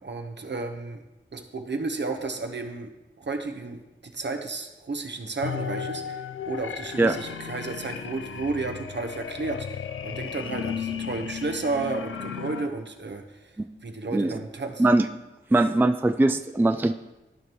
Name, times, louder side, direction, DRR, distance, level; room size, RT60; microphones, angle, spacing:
voice 1, 0.0-1.0 1.3-2.9 3.2-13.5 13.8-14.8, right 3 dB, 60° right, 5 dB, 1.0 m, -32 dB
sound 1, 5.4-12.7, left 7 dB, 85° left, 0.5 m, -35 dB
voice 2, 15.5-16.9, right 2 dB, 10° right, 8 dB, 0.3 m, -21 dB
14.5 x 5.2 x 3.0 m, 1.0 s
wide cardioid pair, 60°, 20 cm